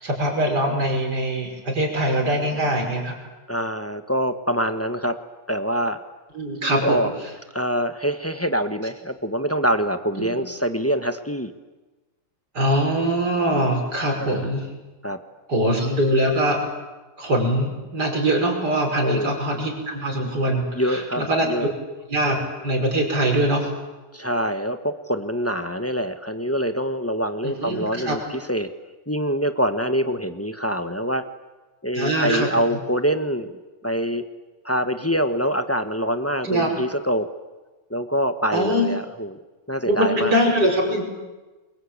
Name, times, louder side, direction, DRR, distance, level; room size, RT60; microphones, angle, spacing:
voice 1, 0.0-3.1 6.3-7.1 10.2-10.3 12.5-14.7 15.5-16.6 17.2-21.6 22.1-22.4 22.6-23.7 27.4-28.2 31.9-32.8 36.4-36.7 38.5-38.9 39.9-41.1, right 1 dB, 50° right, 2 dB, 6.1 m, -22 dB
voice 2, 3.5-5.2 5.5-6.0 6.8-7.1 7.5-11.5 14.2-14.5 15.0-15.2 19.0-19.3 20.7-21.7 24.1-28.7 29.1-31.2 31.8-33.6 33.8-34.2 34.6-37.3 37.9-39.4 39.7-40.3, equal, 10° left, 8 dB, 0.9 m, -25 dB
29.5 x 23.0 x 8.7 m, 1.2 s
omnidirectional pair, 2.3 m